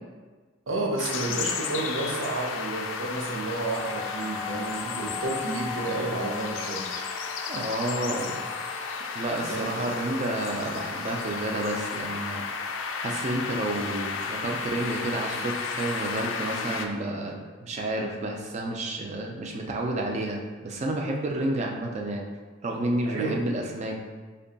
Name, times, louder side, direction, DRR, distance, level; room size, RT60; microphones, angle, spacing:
voice 1, 0.7-6.8 9.5-9.9 23.1-23.5, right 2 dB, 75° right, 0 dB, 0.6 m, -31 dB
sound 1, 1.0-16.9, left 5 dB, 70° left, 0.3 m, -33 dB
sound 2, 3.7-11.6 12.0-12.7, left 6 dB, 15° left, 0.5 m, -41 dB
voice 2, 7.5-8.4 9.1-12.4 13.0-22.3 22.6-24.0, right 1 dB, 35° right, 1 dB, 0.4 m, -30 dB
3.5 x 2.2 x 3.8 m, 1.3 s
head